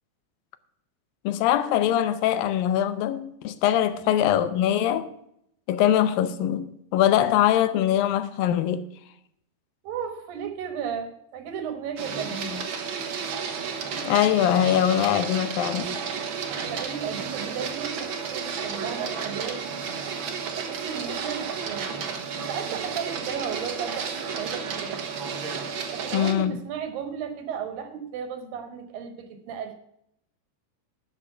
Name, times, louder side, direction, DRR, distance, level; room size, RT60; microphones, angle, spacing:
voice 1, 1.2-5.1 5.7-8.9 14.0-16.0 26.1-26.6, left 11 dB, 85° left, 2.5 m, -22 dB
voice 2, 9.8-12.6 16.5-19.6 20.6-22.1 22.5-25.1 25.9-29.8, right 7 dB, 85° right, 3.1 m, -35 dB
Printer, 12.0-26.3, right 6 dB, 60° right, 1.3 m, -32 dB
12.0 x 6.3 x 6.7 m
omnidirectional pair, 4.0 m